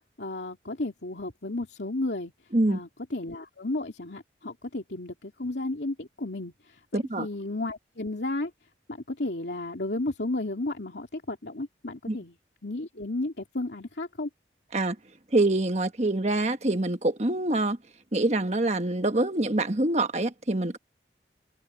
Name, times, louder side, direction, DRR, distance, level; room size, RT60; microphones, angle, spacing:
voice 1, 0.2-2.3 2.7-8.5 8.9-12.3 12.6-14.3, left 2 dB, 75° left, 2.6 m, -33 dB
voice 2, 6.9-7.3 12.1-12.2 14.7-15.0 15.3-17.8 18.1-20.8, right 2 dB, 40° right, 1.4 m, -25 dB
head